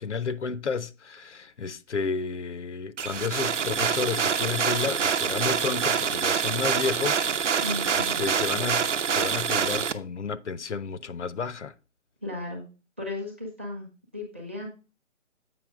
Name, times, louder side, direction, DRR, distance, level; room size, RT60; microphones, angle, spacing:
voice 1, 0.0-7.7 8.0-11.7, left 5 dB, 65° left, 0.7 m, -32 dB
sound 1, 3.0-9.9, right 6 dB, 70° right, 0.9 m, -26 dB
voice 2, 7.5-8.3 12.2-12.6 13.0-14.7, left 2 dB, 10° right, 0.8 m, -36 dB
7.9 x 5.5 x 3.5 m
hypercardioid pair, 175°, 38 cm